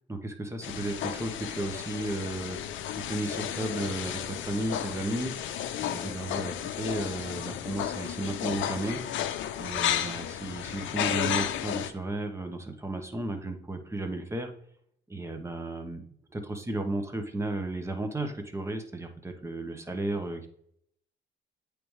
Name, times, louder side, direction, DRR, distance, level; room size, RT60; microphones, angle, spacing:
voice 1, 0.1-2.6 3.0-5.3 5.8-9.0 9.6-14.5 15.1-16.0 16.3-20.5, right 2 dB, 15° right, 6 dB, 1.0 m, -34 dB
sound 1, 0.6-11.9, left 10 dB, 75° left, 0.5 m, -33 dB
8.7 x 3.4 x 3.2 m, 0.67 s
cardioid pair, 90°, 20 cm